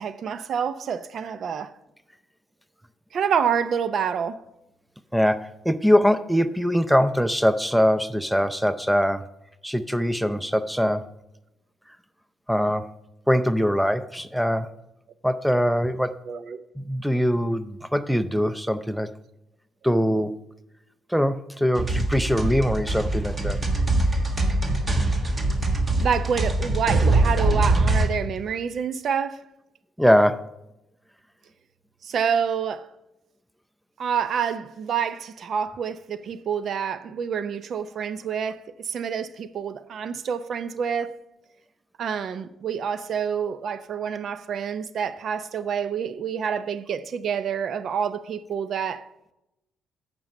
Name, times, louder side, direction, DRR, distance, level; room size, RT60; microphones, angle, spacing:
voice 1, 0.0-1.7 3.1-4.4 16.3-16.7 26.0-29.5 32.0-32.9 34.0-41.2 42.0-49.1, right 7 dB, 60° right, 0.5 m, -27 dB
voice 2, 5.1-9.2 9.6-11.0 12.5-12.9 13.3-14.7 15.2-16.1 16.8-19.1 19.8-20.3 21.1-23.6 30.0-30.5, equal, ahead, 0.5 m, -22 dB
sound 1, 21.8-28.1, right 2 dB, 30° right, 1.5 m, -23 dB
9.0 x 5.4 x 6.5 m
cardioid pair, 90°, 0 cm